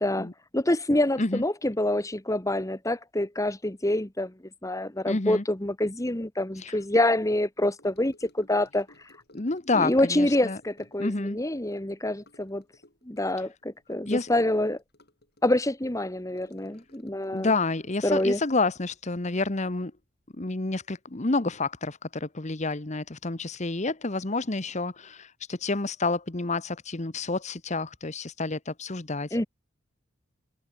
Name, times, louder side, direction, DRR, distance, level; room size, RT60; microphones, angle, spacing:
voice 1, 0.0-4.3 4.6-8.9 9.7-12.6 13.0-14.8 15.4-17.5 18.0-18.4 29.3-29.5, left 1 dB, 15° left, 1.3 m, -26 dB
voice 2, 5.1-5.4 6.6-6.7 9.3-10.6 11.0-11.4 14.1-14.3 17.3-19.9 20.4-29.3, left 3 dB, 35° left, 1.2 m, -29 dB
Gurgling / Sink (filling or washing) / Trickle dribble, 7.8-19.4 19.7-20.0 20.3-20.4, left 1 dB, 50° left, 7.8 m, -58 dB
open air
head